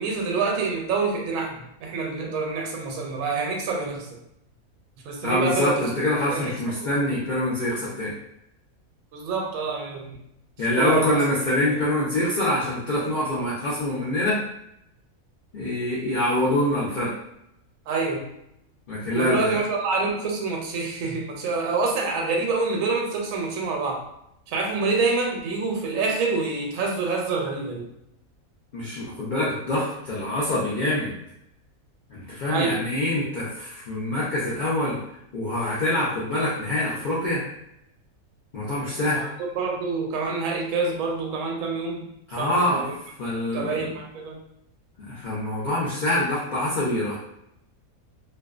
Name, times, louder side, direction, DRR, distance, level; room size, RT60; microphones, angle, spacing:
voice 1, 0.0-4.2 5.0-5.9 6.3-6.5 7.0-7.1 9.1-10.2 10.8-11.2 17.9-18.2 19.1-24.0 24.5-27.9 32.5-32.8 39.1-42.1 42.4-43.0 43.5-44.4, right 4 dB, 75° right, 0 dB, 1.0 m, -27 dB
voice 2, 5.2-8.1 10.6-14.4 15.5-17.1 18.9-19.6 28.7-31.1 32.1-35.0 35.3-37.4 38.5-39.2 42.3-42.9 43.2-43.9 45.1-47.1, left 1 dB, 65° left, -7 dB, 0.4 m, -25 dB
2.5 x 2.1 x 2.3 m, 0.78 s
omnidirectional pair, 1.5 m